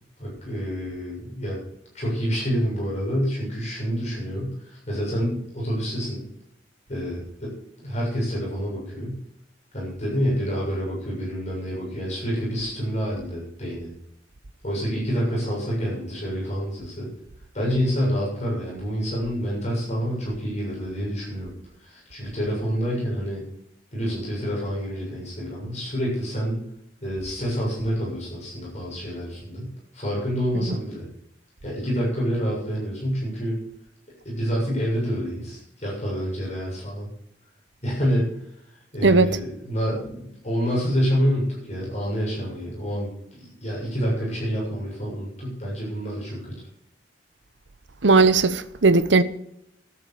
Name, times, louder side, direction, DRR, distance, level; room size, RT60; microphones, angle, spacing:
voice 1, 0.2-1.6 1.9-6.2 6.9-7.5 7.8-9.2 9.7-13.9 14.6-17.1 17.5-21.5 21.8-23.4 23.9-26.6 27.0-31.0 31.6-33.6 34.2-37.1 37.8-38.3 38.9-43.1 43.4-46.5, equal, 40° left, 7.2 m, -27 dB
voice 2, 48.0-49.2, right 3 dB, 80° right, 0.9 m, -17 dB
11.5 x 10.5 x 7.1 m
head